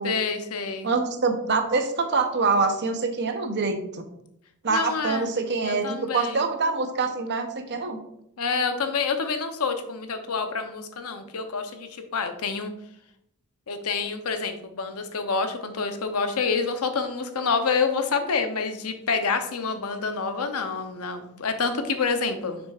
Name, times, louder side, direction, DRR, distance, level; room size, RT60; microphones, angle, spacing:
voice 1, 0.0-0.9 4.7-5.3 5.6-6.5 8.4-12.7 13.7-22.6, left 5 dB, 80° left, 7 dB, 0.8 m, -27 dB
voice 2, 0.8-4.0 4.6-5.9 6.1-8.0, right 4 dB, 50° right, 6 dB, 0.8 m, -25 dB
7.0 x 6.2 x 2.4 m, 0.76 s
head